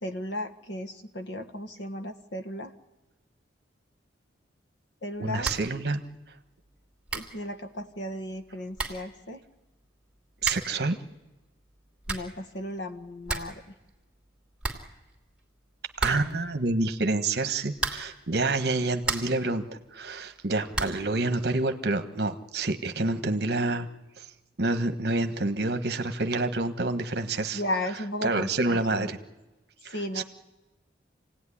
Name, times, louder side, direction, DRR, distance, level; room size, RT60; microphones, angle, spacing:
voice 1, 0.0-2.7 5.0-5.5 7.1-9.4 12.1-13.6 27.5-29.1 29.9-30.2, left 1 dB, 75° left, 8 dB, 1.6 m, -35 dB
voice 2, 5.2-6.0 10.4-11.0 16.0-19.6 19.9-23.9 24.2-24.3 24.6-27.6 28.2-29.2 29.8-30.2, right 2 dB, 60° right, 7 dB, 1.3 m, -28 dB
sound 1, 5.4-5.8 6.1-6.2 6.8-6.9 7.1-7.4 8.4-8.5 8.7-9.1 10.4-10.8 11.8-12.4 12.8-12.9 13.1-13.6 13.9-14.0 14.3-14.4 14.6-15.4 16.0-16.5 17.7-18.2 18.7-19.5 20.7-21.1, right 3 dB, 5° right, 2.9 m, -33 dB
28.0 x 17.5 x 10.0 m, 1.1 s
head